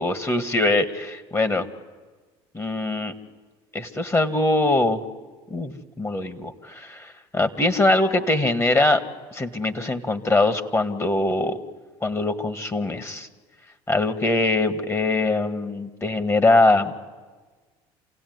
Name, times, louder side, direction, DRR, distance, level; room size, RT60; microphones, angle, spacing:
voice 1, 0.0-1.7 2.5-3.1 3.7-5.0 5.5-9.0 9.3-11.6 12.0-13.3 13.9-16.9, left 2 dB, 20° left, 9 dB, 1.8 m, -22 dB
27.5 x 17.0 x 9.5 m, 1.4 s
hypercardioid pair, 80°, 13 cm